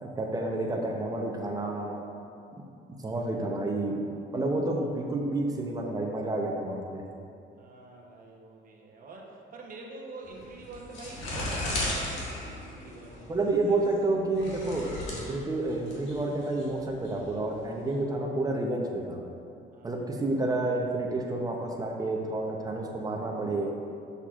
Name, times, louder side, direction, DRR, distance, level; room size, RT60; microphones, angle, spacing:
voice 1, 0.0-2.0 3.0-3.9 4.3-7.0 13.3-19.2 19.8-23.7, right 2 dB, 20° right, 1 dB, 0.7 m, -30 dB
voice 2, 7.6-13.8 19.7-20.2, right 3 dB, 50° right, -1 dB, 1.0 m, -46 dB
sound 1, 10.2-17.9, left 1 dB, 85° left, 1.4 m, -36 dB
6.7 x 5.9 x 2.4 m, 2.6 s
cardioid pair, 110°, 19 cm